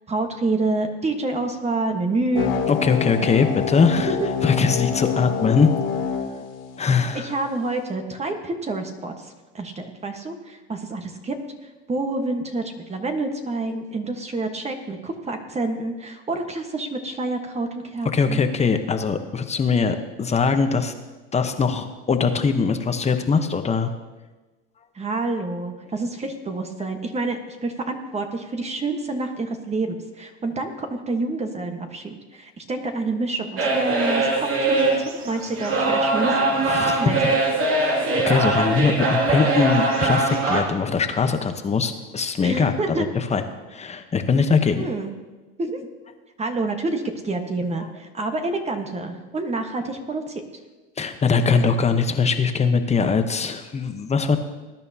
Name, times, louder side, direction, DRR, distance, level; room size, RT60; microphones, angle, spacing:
voice 1, 0.1-2.5 4.0-4.3 7.1-11.3 11.6-18.4 24.9-35.0 35.2-37.2 42.4-43.1 44.8-45.1 45.6-45.9 46.4-50.4, right 2 dB, 20° right, 5 dB, 1.4 m, -28 dB
sound 1, 2.3-7.3, left 7 dB, 75° left, 2.7 m, -27 dB
voice 2, 2.7-4.1 4.4-5.7 6.8-7.3 18.1-20.9 21.3-23.9 36.7-37.0 37.8-37.9 38.2-43.4 43.7-44.9 51.0-54.4, left 5 dB, 20° left, 7 dB, 1.0 m, -21 dB
sound 2, 33.6-40.6, right 2 dB, 45° right, 2.5 m, -22 dB
20.0 x 10.5 x 2.9 m, 1.2 s
supercardioid pair, 105°, 31 cm